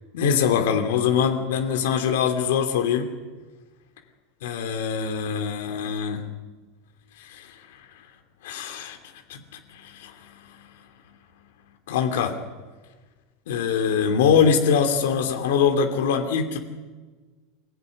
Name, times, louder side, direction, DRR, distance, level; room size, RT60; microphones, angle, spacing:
voice 1, 0.1-3.1 4.4-6.2 7.2-7.5 8.4-9.0 9.3-9.4 9.7-10.4 11.9-12.3 13.5-16.6, left 7 dB, 85° left, 5 dB, 2.9 m, -23 dB
24.5 x 17.0 x 9.8 m, 1.3 s
supercardioid pair, 175°, 0 cm